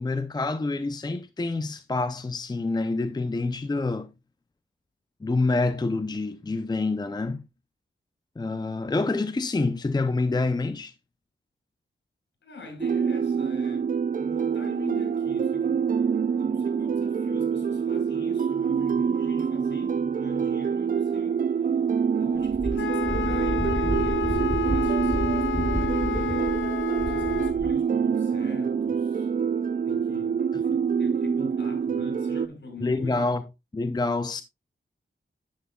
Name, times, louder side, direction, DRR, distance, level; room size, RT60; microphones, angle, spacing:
voice 1, 0.0-4.1 5.2-7.4 8.4-10.9 32.8-33.4 33.7-34.4, left 3 dB, 20° left, 0.6 m, -27 dB
voice 2, 12.4-13.9 14.2-15.8 16.4-21.4 22.2-26.5 27.1-29.3 29.8-30.4 31.0-33.2, left 3 dB, 65° left, 5.5 m, -43 dB
sound 1, 12.8-32.5, right 6 dB, 45° right, 0.5 m, -26 dB
Wind, 22.4-27.8, equal, ahead, 0.9 m, -31 dB
Wind instrument woodwind instrument, 22.7-27.6, left 9 dB, 80° left, 0.8 m, -31 dB
10.5 x 9.2 x 2.3 m
wide cardioid pair, 95°, 20 cm